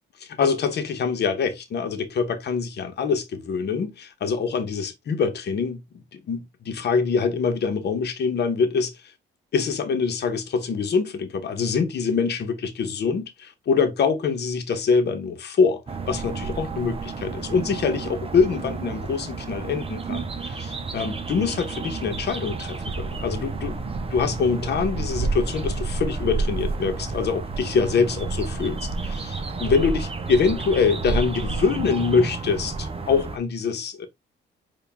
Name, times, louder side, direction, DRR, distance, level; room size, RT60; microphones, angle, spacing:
voice 1, 0.2-5.8 6.1-8.9 9.5-15.8 16.1-34.1, left 5 dB, 60° left, 1.1 m, -24 dB
sound 1, 15.9-33.4, right 4 dB, 30° right, 0.8 m, -30 dB
4.7 x 2.6 x 3.4 m
cardioid pair, 90°, 20 cm